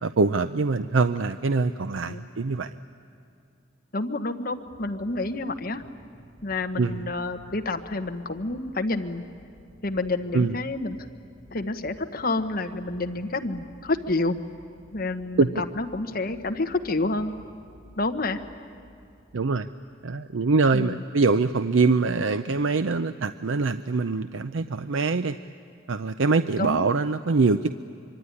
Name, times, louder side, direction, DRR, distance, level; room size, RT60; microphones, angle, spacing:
voice 1, 0.0-2.7 6.8-7.1 10.3-10.6 15.4-15.6 19.3-19.7 20.0-25.4 25.9-27.7, right 4 dB, 85° right, 10 dB, 0.6 m, -24 dB
voice 2, 3.9-5.8 6.4-9.2 9.8-11.0 11.5-14.4 14.9-17.3 18.0-18.4 20.7-21.0 26.6-26.9, left 2 dB, 50° left, 6 dB, 1.3 m, -29 dB
sound 1, 4.4-20.0 20.8-20.9, equal, 50° right, 7.1 m, -53 dB
25.0 x 24.0 x 9.9 m, 2.5 s
head